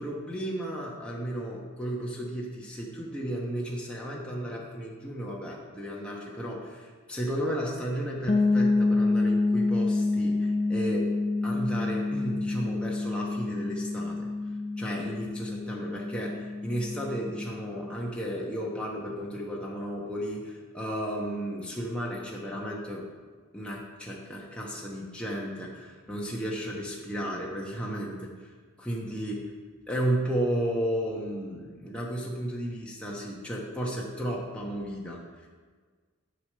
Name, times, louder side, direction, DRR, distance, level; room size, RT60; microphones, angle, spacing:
voice 1, 0.0-11.1 11.4-14.3 14.8-23.0 23.5-28.5 28.8-29.5 29.9-35.5, right 1 dB, 5° left, -4 dB, 1.1 m, -33 dB
sound 1, 8.3-18.0, left 3 dB, 25° left, 0.4 m, -28 dB
11.0 x 4.9 x 6.6 m, 1.5 s
head